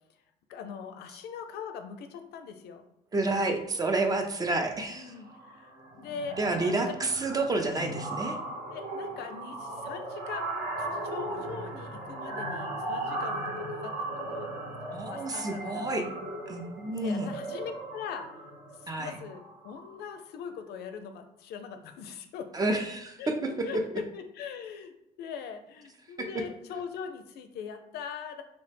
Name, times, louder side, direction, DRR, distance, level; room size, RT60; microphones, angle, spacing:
voice 1, 0.5-2.8 4.9-5.7 6.0-7.0 8.7-14.5 15.1-16.3 16.9-18.3 18.8-22.5 23.2-28.4, left 6 dB, 75° left, 7 dB, 0.4 m, -41 dB
voice 2, 3.1-5.1 6.4-8.4 14.9-16.1 16.5-17.3 18.9-19.1 22.5-23.5 26.2-26.3, right 2 dB, 20° right, 4 dB, 0.4 m, -29 dB
sound 1, 4.1-4.4 4.7-4.9 5.2-20.1, right 2 dB, 60° right, 1.0 m, -37 dB
3.0 x 2.0 x 3.2 m, 0.84 s
cardioid pair, 110°, 17 cm